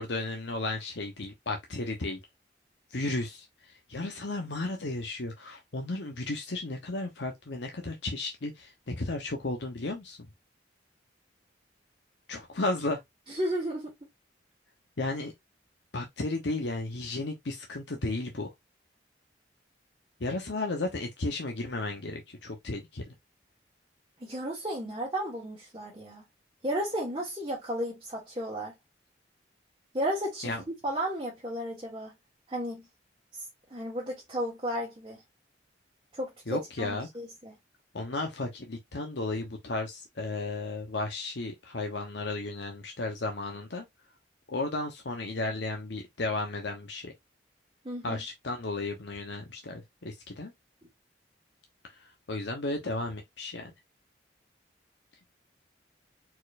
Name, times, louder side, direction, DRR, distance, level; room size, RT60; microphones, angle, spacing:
voice 1, 0.0-2.2 2.9-3.5 3.9-10.3 12.3-13.0 15.0-15.3 15.9-18.5 20.2-23.0 30.4-30.6 36.5-37.1 37.9-43.8 44.5-47.1 48.0-50.5 52.0-53.7, left 2 dB, 75° left, 0.9 m, -34 dB
voice 2, 13.3-13.9 24.2-26.2 26.6-28.7 29.9-30.5 30.8-32.1 32.5-32.8 33.3-33.4 33.7-35.2 36.1-37.5 47.8-48.2, equal, 25° right, 1.5 m, -33 dB
4.4 x 4.3 x 2.5 m
head